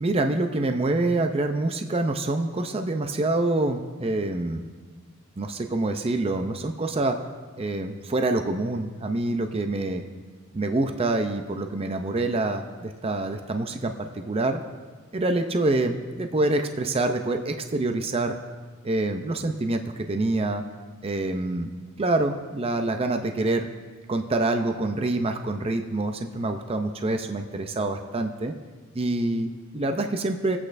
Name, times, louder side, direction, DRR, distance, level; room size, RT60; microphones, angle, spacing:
voice 1, 0.0-4.6 5.4-7.2 7.6-10.0 10.5-14.6 15.1-18.4 18.8-20.6 21.0-21.7 22.0-23.7 24.1-28.5 28.9-30.6, right 2 dB, 30° right, 6 dB, 0.5 m, -26 dB
22.0 x 8.5 x 2.6 m, 1.4 s
head